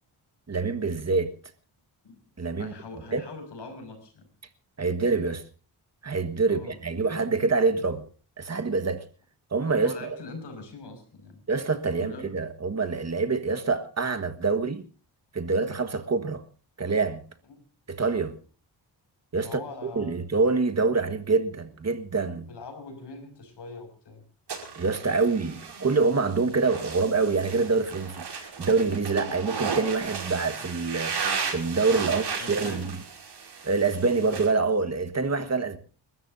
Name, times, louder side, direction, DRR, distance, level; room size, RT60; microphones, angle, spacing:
voice 1, 0.5-1.3 2.4-2.7 3.1-3.2 4.8-5.4 6.0-8.0 8.4-9.0 9.5-10.2 11.5-14.9 15.3-16.4 16.8-17.2 17.9-18.3 19.3-22.5 24.7-32.9 33.6-35.8, right 4 dB, 35° right, 1.6 m, -26 dB
voice 2, 2.6-4.3 6.4-6.8 9.8-11.4 12.0-12.3 17.5-17.6 19.4-20.2 22.5-24.2 32.1-32.9, left 3 dB, 70° left, 6.0 m, -42 dB
sound 1, 24.5-34.5, right 5 dB, 65° right, 5.1 m, -35 dB
29.5 x 13.5 x 2.7 m
wide cardioid pair, 115°, 43 cm